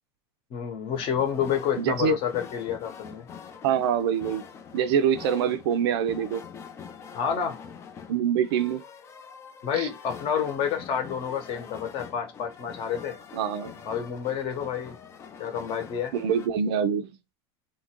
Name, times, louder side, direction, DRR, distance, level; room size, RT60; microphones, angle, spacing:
voice 1, 0.5-3.3 7.1-7.6 9.6-13.2 13.8-15.0 15.4-16.1, left 8 dB, 40° left, 0.9 m, -29 dB
sound 1, 0.9-16.5, left 7 dB, 20° left, 0.3 m, -45 dB
voice 2, 1.8-2.1 3.6-4.4 4.7-6.5 8.1-8.8 9.7-9.9 13.3-13.8 16.1-17.1, right 8 dB, 75° right, 0.5 m, -25 dB
2.9 x 2.6 x 2.9 m
supercardioid pair, 145°, 13 cm